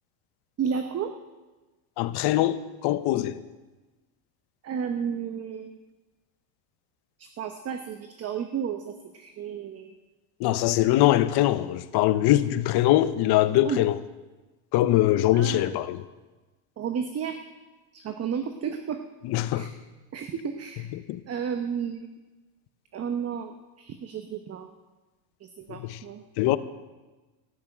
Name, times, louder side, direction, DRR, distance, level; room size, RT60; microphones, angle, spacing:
voice 1, 0.6-1.1 4.6-5.8 7.2-9.9 10.5-10.7 13.6-13.8 15.3-15.7 16.8-17.4 17.9-19.0 19.5-19.7 20.1-20.9 21.3-22.1 22.9-24.7 25.4-26.2, right 7 dB, 30° right, 1.0 m, -32 dB
voice 2, 2.0-3.4 10.4-14.0 14.7-16.0 19.2-19.7 21.1-21.2 25.7-26.0 26.4-26.6, left 14 dB, 55° left, 1.0 m, -22 dB
14.5 x 8.3 x 9.1 m
supercardioid pair, 115°, 48 cm